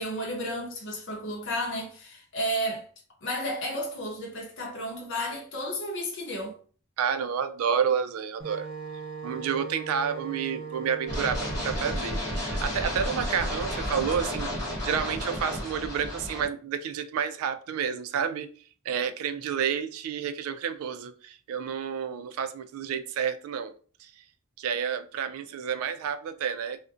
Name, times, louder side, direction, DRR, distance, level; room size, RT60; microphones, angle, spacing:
voice 1, 0.0-2.8 3.2-6.6, equal, 55° left, 0.7 m, -32 dB
voice 2, 7.0-8.7 9.2-14.5 14.8-18.5 18.9-24.1 24.6-26.8, right 7 dB, 80° right, 0.3 m, -30 dB
Wind instrument woodwind instrument, 8.4-13.1, right 5 dB, 45° right, 0.7 m, -40 dB
sound 1, 11.1-16.5, equal, 15° left, 1.0 m, -32 dB
2.4 x 2.1 x 2.4 m
head